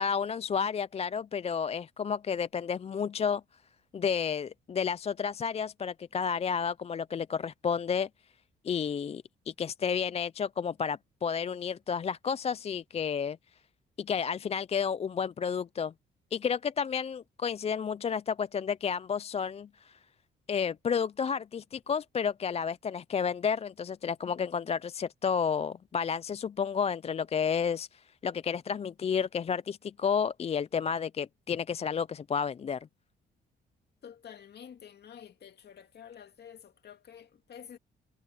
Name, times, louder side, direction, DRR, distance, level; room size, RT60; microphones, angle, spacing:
voice 1, 0.0-3.4 3.9-8.1 8.6-13.4 14.0-15.9 16.3-20.0 20.5-32.9, left 6 dB, 30° left, 0.4 m, -31 dB
voice 2, 34.0-37.8, left 8 dB, 55° left, 2.4 m, -49 dB
cardioid pair, 90°, 20 cm